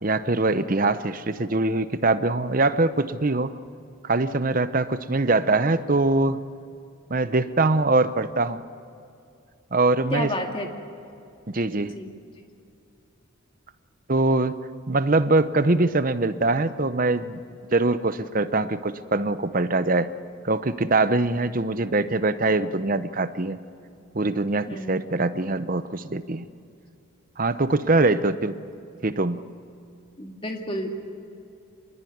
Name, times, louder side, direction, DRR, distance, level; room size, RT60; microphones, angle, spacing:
voice 1, 0.0-3.5 4.0-6.4 7.1-8.6 9.7-10.3 11.5-12.0 14.1-14.6 14.9-17.4 17.7-20.1 20.4-23.6 24.1-26.5 27.4-28.5 29.0-29.5, right 2 dB, 40° right, 12 dB, 0.8 m, -23 dB
voice 2, 10.1-10.7 11.9-12.1 24.7-25.1 30.2-30.9, left 1 dB, 25° left, 3 dB, 2.3 m, -31 dB
25.5 x 21.0 x 9.4 m, 2.6 s
head